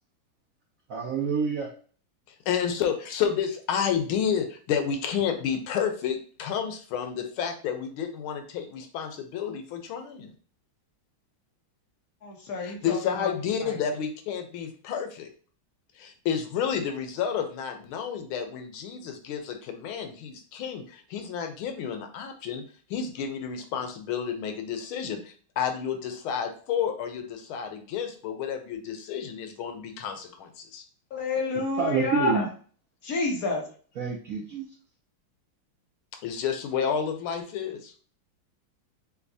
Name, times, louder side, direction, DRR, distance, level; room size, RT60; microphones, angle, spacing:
voice 1, 0.9-1.7 31.8-32.5 34.0-34.6, right 5 dB, 65° right, -1 dB, 0.8 m, -27 dB
voice 2, 2.5-10.3 12.6-15.3 16.0-22.6 22.9-30.8 36.2-37.9, left 7 dB, 90° left, 6 dB, 1.6 m, -30 dB
voice 3, 12.2-13.3 13.6-13.8 31.1-32.5 33.0-33.6, left 3 dB, 55° left, 0 dB, 1.2 m, -29 dB
6.7 x 2.3 x 2.7 m, 0.43 s
omnidirectional pair, 2.2 m